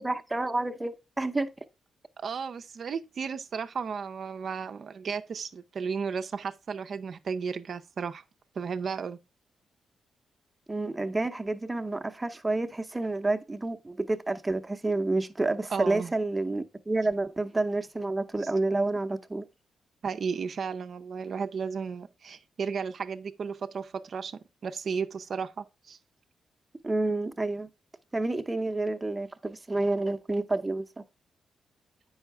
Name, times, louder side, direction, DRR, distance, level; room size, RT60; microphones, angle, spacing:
voice 1, 0.0-1.5 10.7-19.4 26.8-27.7 28.1-31.0, right 2 dB, 20° right, 0.8 m, -29 dB
voice 2, 2.2-8.2 8.5-9.2 15.7-16.1 20.0-26.0, right 6 dB, 60° right, 0.6 m, -34 dB
8.0 x 5.6 x 3.4 m
cardioid pair, 65°, 0 cm